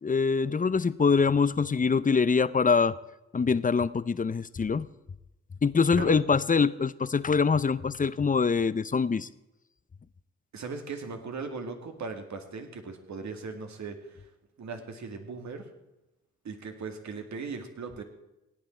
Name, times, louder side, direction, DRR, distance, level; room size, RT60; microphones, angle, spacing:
voice 1, 0.0-2.9 3.3-4.9 5.6-9.3, left 5 dB, 25° left, 17 dB, 0.6 m, -24 dB
voice 2, 10.5-14.3 14.6-15.7 16.4-18.0, right 4 dB, 65° right, 5 dB, 2.1 m, -38 dB
17.0 x 9.4 x 4.4 m, 0.95 s
supercardioid pair, 50°, 30 cm